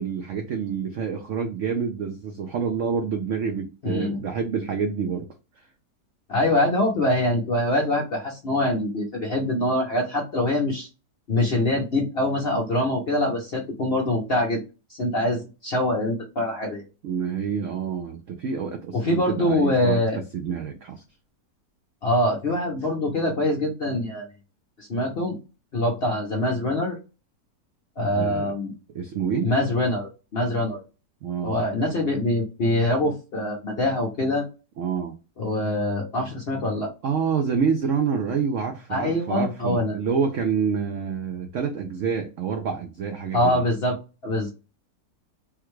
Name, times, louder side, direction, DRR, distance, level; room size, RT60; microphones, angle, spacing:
voice 1, 0.0-5.3 17.0-20.0 20.3-21.0 28.0-28.5 28.9-29.5 31.2-31.6 34.8-35.1 37.0-43.6, right 6 dB, 80° right, 0.7 m, -27 dB
voice 2, 3.8-4.2 6.3-10.9 11.3-14.6 14.9-16.8 18.9-20.2 22.0-24.3 24.8-25.4 25.7-27.0 28.0-28.7 29.4-30.8 31.4-34.4 35.4-36.9 38.9-40.0 43.3-44.0 44.2-44.5, left 1 dB, 55° left, 0.6 m, -24 dB
3.5 x 2.2 x 3.0 m
omnidirectional pair, 1.9 m